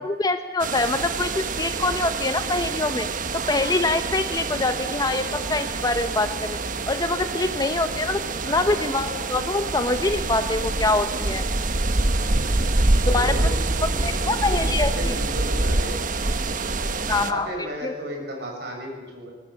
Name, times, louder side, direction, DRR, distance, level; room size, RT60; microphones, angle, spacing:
voice 1, 0.0-3.1 3.5-6.6 6.9-8.2 8.5-11.4 13.1-13.3 14.0-15.1 17.1-17.5 17.8-17.9, left 2 dB, 20° left, 8 dB, 0.9 m, -24 dB
sound 1, 0.6-17.3, right 2 dB, 45° right, 1.2 m, -26 dB
voice 2, 8.4-8.7 13.0-16.0 16.7-19.3, equal, 65° right, 1 dB, 6.9 m, -34 dB
21.5 x 20.0 x 8.4 m, 1.3 s
head